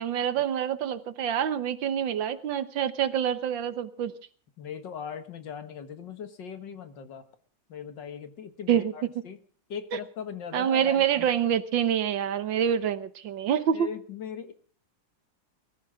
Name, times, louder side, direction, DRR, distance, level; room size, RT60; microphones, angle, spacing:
voice 1, 0.0-4.1 8.7-8.9 9.9-10.0 10.5-13.9, right 9 dB, 80° right, 13 dB, 1.8 m, -26 dB
voice 2, 4.6-7.3 7.7-9.4 9.7-11.3 13.7-14.5, left 7 dB, 70° left, 10 dB, 2.1 m, -39 dB
22.5 x 14.5 x 3.7 m, 0.40 s
omnidirectional pair, 2.1 m